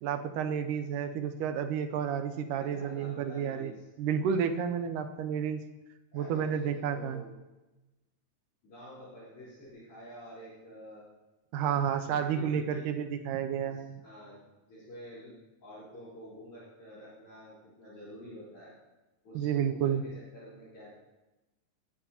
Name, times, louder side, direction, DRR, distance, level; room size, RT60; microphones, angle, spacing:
voice 1, 0.0-3.7 4.0-5.6 6.1-7.2 11.5-14.0 19.3-20.0, right 8 dB, 80° right, 7 dB, 2.1 m, -31 dB
voice 2, 2.5-3.9 6.1-7.3 8.6-11.0 11.6-11.7 12.0-12.9 13.6-15.3 15.6-18.7 19.2-20.9, equal, 40° left, -11 dB, 4.8 m, -48 dB
18.5 x 9.7 x 2.8 m, 1.1 s
omnidirectional pair, 3.9 m